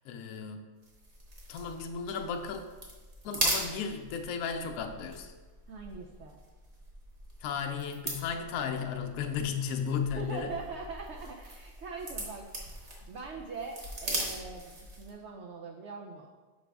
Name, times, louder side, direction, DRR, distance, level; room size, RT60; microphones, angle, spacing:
voice 1, 0.1-0.6 1.5-2.6 3.2-5.3 7.4-10.5, left 6 dB, 70° left, 4 dB, 1.0 m, -34 dB
sound 1, 0.8-15.2, right 1 dB, 45° right, 1.4 m, -40 dB
voice 2, 5.7-6.4 10.1-12.5 13.1-16.3, right 4 dB, 75° right, 1 dB, 0.6 m, -42 dB
6.1 x 4.9 x 3.3 m, 1.3 s
omnidirectional pair, 1.7 m